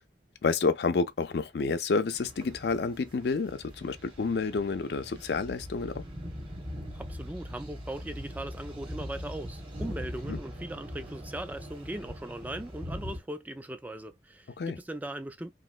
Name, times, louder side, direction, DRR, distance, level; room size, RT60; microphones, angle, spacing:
voice 1, 0.4-6.0 10.3-10.4 14.6-14.8, left 4 dB, 65° left, 0.4 m, -29 dB
sound 1, 2.1-13.2, equal, 30° right, 1.0 m, -41 dB
voice 2, 6.9-15.5, right 1 dB, 10° right, 0.3 m, -39 dB
3.1 x 2.5 x 2.4 m
head